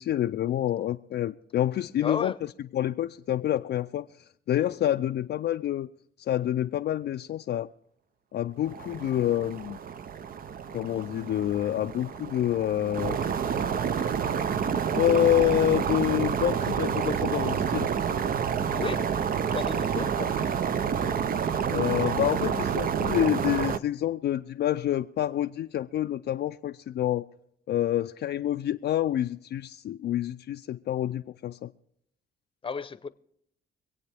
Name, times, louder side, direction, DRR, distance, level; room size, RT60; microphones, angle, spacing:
voice 1, 0.0-2.3 2.7-4.1 4.5-5.9 6.3-7.7 8.3-9.8 10.7-13.2 14.0-14.4 14.9-17.9 21.7-27.3 27.7-31.7, left 12 dB, 60° left, 0.4 m, -27 dB
voice 2, 2.0-2.4 18.7-19.1 19.5-20.3 32.6-33.1, left 5 dB, 25° left, 0.8 m, -33 dB
sound 1, 8.6-23.8, right 7 dB, 45° right, 0.6 m, -29 dB
25.5 x 8.7 x 3.5 m
cardioid pair, 90°, 20 cm